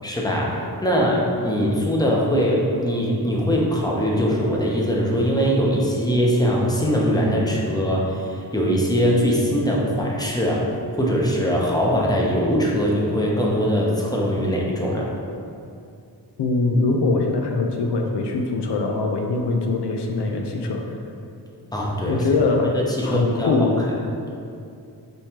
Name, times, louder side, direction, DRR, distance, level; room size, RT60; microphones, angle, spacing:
voice 1, 0.0-10.7 11.0-15.1 21.7-22.2 22.7-23.5, equal, 10° left, -3 dB, 0.8 m, -21 dB
voice 2, 16.4-21.0 22.1-23.8, left 3 dB, 75° left, 2 dB, 0.6 m, -22 dB
5.4 x 3.2 x 2.9 m, 2.5 s
cardioid pair, 75°, 40 cm